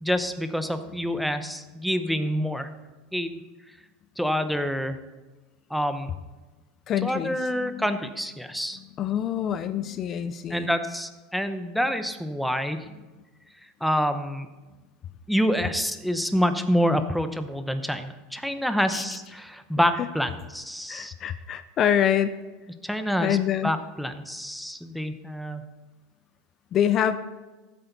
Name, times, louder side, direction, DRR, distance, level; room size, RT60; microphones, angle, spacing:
voice 1, 0.0-2.7 3.1-3.4 4.2-5.0 5.7-6.1 7.0-8.8 10.5-12.9 13.8-14.5 15.3-21.1 22.8-23.4 23.6-25.7, equal, ahead, 9 dB, 0.8 m, -27 dB
voice 2, 6.9-8.1 9.0-10.8 18.9-19.0 20.9-22.4 23.2-23.7 26.7-27.2, left 9 dB, 40° left, 12 dB, 0.5 m, -26 dB
14.0 x 8.0 x 4.0 m, 1.2 s
supercardioid pair, 120°, 0 cm